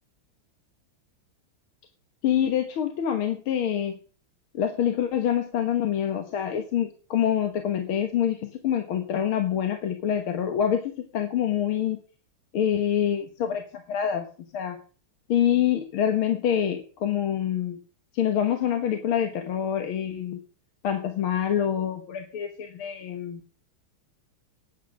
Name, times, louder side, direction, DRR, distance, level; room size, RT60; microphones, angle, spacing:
voice 1, 2.2-4.0 4.5-12.0 12.5-13.6 13.9-14.3 14.5-14.8 15.3-17.8 18.1-20.4 20.8-23.4, left 9 dB, 75° left, 5 dB, 2.1 m, -26 dB
11.0 x 8.5 x 6.2 m, 0.38 s
omnidirectional pair, 2.3 m